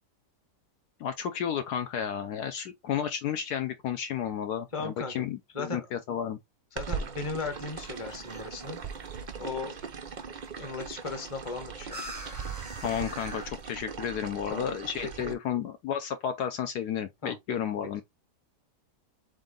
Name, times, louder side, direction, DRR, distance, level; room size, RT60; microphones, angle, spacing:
voice 1, 1.0-6.4 12.8-18.0, left 9 dB, 70° left, 1.1 m, -32 dB
voice 2, 4.7-5.1 5.5-5.9 6.7-8.8 9.4-9.7 10.5-12.0 14.5-14.6 15.2-15.3 17.2-17.6, left 3 dB, 20° left, 1.1 m, -36 dB
sound 1, 6.8-15.3, right 6 dB, 70° right, 0.4 m, -40 dB
sound 2, 7.4-13.8, right 1 dB, 15° right, 0.7 m, -47 dB
3.8 x 3.7 x 3.7 m
omnidirectional pair, 1.9 m